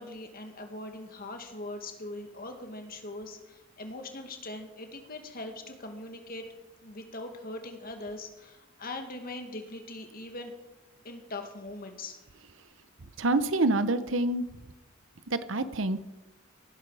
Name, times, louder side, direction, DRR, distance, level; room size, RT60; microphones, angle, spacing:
voice 1, 0.0-6.5 6.8-10.5 11.0-12.2, left 2 dB, 45° left, 5 dB, 2.0 m, -41 dB
voice 2, 13.2-14.4 15.3-16.0, right 2 dB, 70° right, 12 dB, 0.9 m, -26 dB
17.5 x 11.0 x 4.9 m, 1.0 s
head